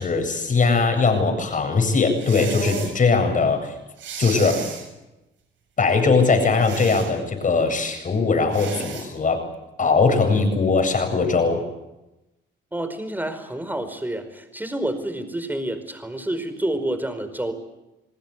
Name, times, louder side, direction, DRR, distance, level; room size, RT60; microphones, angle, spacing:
voice 1, 0.0-3.7 4.2-4.7 5.8-9.4 9.8-11.6, left 4 dB, 40° left, 6 dB, 7.9 m, -20 dB
sound 1, 2.2-2.9 4.0-4.9 6.6-7.1 8.5-9.1, right 6 dB, 75° right, 7.3 m, -33 dB
voice 2, 12.7-17.5, right 1 dB, 10° right, 9 dB, 4.9 m, -28 dB
29.5 x 19.0 x 8.4 m, 0.97 s
cardioid pair, 90°, 20 cm